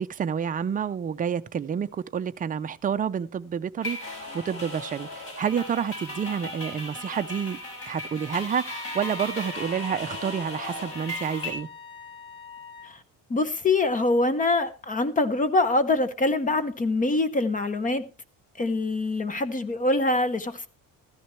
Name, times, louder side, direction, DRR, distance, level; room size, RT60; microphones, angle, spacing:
voice 1, 0.0-7.6 7.9-11.7, right 7 dB, 25° right, 0.5 m, -29 dB
sound 1, 3.8-11.5, left 1 dB, 40° left, 6.1 m, -37 dB
Wind instrument woodwind instrument, 8.7-13.0, left 4 dB, 70° left, 2.3 m, -43 dB
voice 2, 13.3-18.0 18.6-20.7, left 2 dB, 25° left, 0.8 m, -24 dB
14.5 x 13.5 x 3.2 m
cardioid pair, 160°, 35 cm